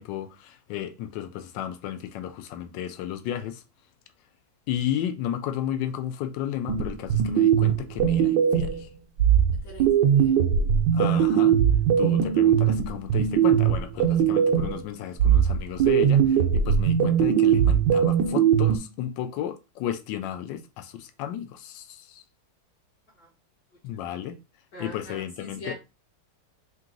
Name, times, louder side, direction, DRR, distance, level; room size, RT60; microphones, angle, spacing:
voice 1, 0.0-3.6 4.7-8.7 10.9-11.6 12.0-16.2 16.5-21.8 23.8-24.4 24.8-25.7, left 10 dB, 75° left, 1.2 m, -33 dB
sound 1, 6.7-8.8 9.2-14.8 15.2-18.8, right 8 dB, 70° right, 1.1 m, -20 dB
voice 2, 9.6-10.4 14.1-14.3 23.2-23.3 24.7-25.7, left 1 dB, 55° left, 1.5 m, -42 dB
3.7 x 2.8 x 3.7 m
omnidirectional pair, 2.3 m